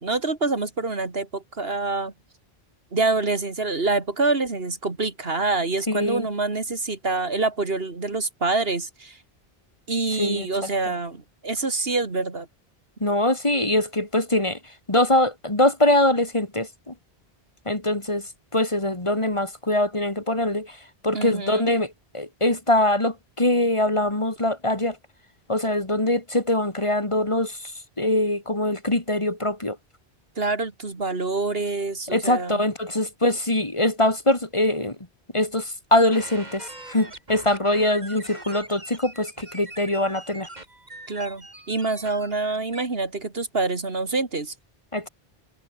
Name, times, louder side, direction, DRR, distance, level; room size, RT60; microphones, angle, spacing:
voice 1, 0.0-2.1 2.9-9.2 9.9-12.5 21.1-21.7 30.4-32.7 41.1-44.5, right 3 dB, 70° right, 2.8 m, -26 dB
voice 2, 5.9-6.3 10.2-10.5 13.0-14.6 14.9-16.9 17.7-20.8 21.0-25.0 25.5-27.7 28.0-29.8 32.1-35.0 35.3-40.5 44.9-45.1, left 1 dB, 30° left, 2.4 m, -23 dB
sound 1, 36.1-42.9, right 1 dB, 45° right, 4.3 m, -42 dB
omnidirectional pair, 1.0 m